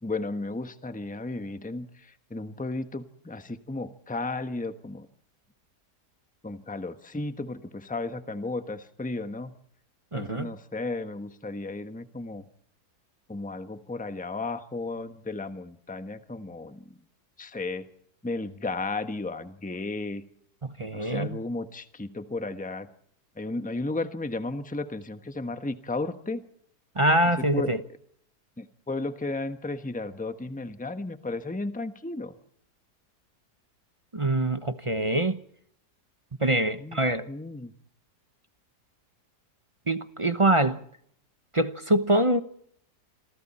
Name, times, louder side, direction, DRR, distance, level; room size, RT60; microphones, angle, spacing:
voice 1, 0.0-5.1 6.4-9.5 10.1-12.5 13.3-16.8 17.4-17.9 18.2-20.2 20.9-22.9 23.4-26.4 27.4-27.8 28.6-32.3 36.8-37.0 37.3-37.7, left 2 dB, 5° left, 1.1 m, -34 dB
voice 2, 10.1-10.5 20.6-21.4 26.9-27.8 34.1-35.4 36.4-37.3 39.9-40.8 41.5-42.4, right 1 dB, 25° right, 0.8 m, -24 dB
27.0 x 26.0 x 4.4 m
omnidirectional pair, 1.7 m